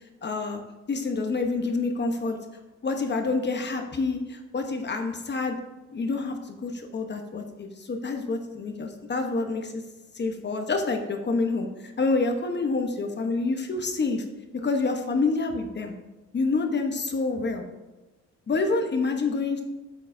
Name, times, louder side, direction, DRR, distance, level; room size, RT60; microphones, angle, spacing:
voice 1, 0.2-0.6 0.9-2.4 2.8-5.6 5.9-9.8 10.1-14.2 14.6-15.9 16.3-17.6 18.5-19.6, left 3 dB, 35° left, 4 dB, 1.1 m, -27 dB
8.2 x 8.1 x 2.7 m, 1.1 s
cardioid pair, 90°, 30 cm